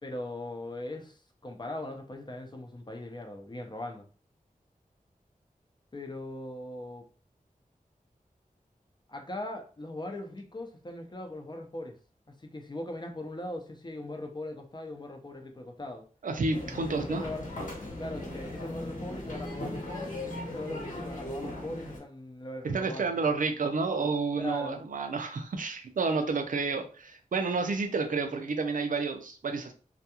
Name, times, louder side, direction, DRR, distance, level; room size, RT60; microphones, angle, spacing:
voice 1, 0.0-4.1 5.9-7.1 9.1-12.0 12.3-16.1 16.7-17.5 18.0-23.4 24.4-24.8, left 1 dB, 30° left, 0.6 m, -40 dB
voice 2, 16.2-17.3 22.6-29.7, right 4 dB, 70° right, 0.5 m, -30 dB
sound 1, 16.5-22.0, left 1 dB, 70° left, 0.9 m, -38 dB
2.3 x 2.3 x 2.8 m
wide cardioid pair, 65°, 14 cm